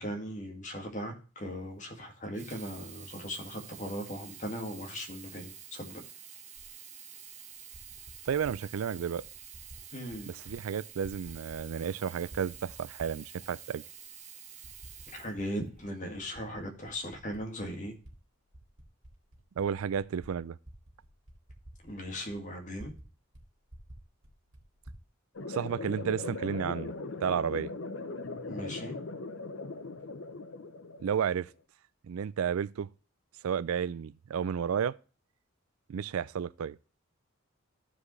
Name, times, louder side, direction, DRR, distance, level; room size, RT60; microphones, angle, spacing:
voice 1, 0.0-6.0 9.9-10.3 15.1-17.9 21.8-22.9 28.5-29.0, equal, 35° left, 2.0 m, -38 dB
Sink (filling or washing), 2.2-16.0 16.8-16.9, right 8 dB, 35° right, 1.2 m, -49 dB
Typing, 6.6-6.7 7.5-8.6 9.2-9.8 10.1-10.6 10.9-11.9 12.2-13.4 14.0-14.1 14.6-15.5 15.8-18.1 18.5-23.1 23.3-23.4 23.7-25.0, right 1 dB, 60° right, 2.4 m, -51 dB
voice 2, 8.3-9.2 10.3-13.8 19.6-20.6 25.5-26.9 27.2-27.7 31.0-31.5 32.1-32.9 33.4-35.0 35.9-36.8, right 7 dB, 80° right, 0.4 m, -32 dB
sound 1, 25.4-31.4, left 3 dB, 65° left, 0.8 m, -40 dB
14.5 x 5.0 x 3.2 m
head